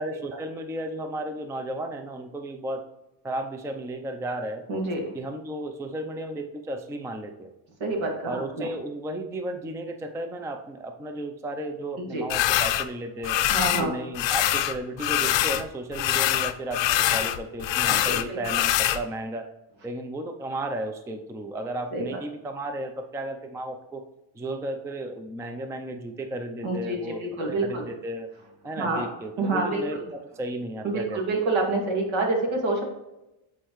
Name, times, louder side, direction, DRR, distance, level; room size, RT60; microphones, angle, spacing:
voice 1, 0.0-2.8 3.2-4.6 5.1-7.5 8.2-13.4 13.8-19.5 19.8-24.0 24.3-28.3 28.6-31.4, right 1 dB, 5° right, 6 dB, 0.4 m, -34 dB
voice 2, 4.7-5.1 7.8-8.7 12.1-12.2 13.5-13.9 17.9-18.4 21.9-22.2 26.6-27.9 28.8-29.1 29.4-30.0 30.8-32.8, right 2 dB, 70° right, 1 dB, 2.1 m, -27 dB
sound 1, 12.3-12.9 13.2-13.9 14.1-15.6 15.9-19.0, left 12 dB, 65° left, 0.6 m, -24 dB
8.4 x 4.4 x 3.0 m, 0.93 s
cardioid pair, 125°, 48 cm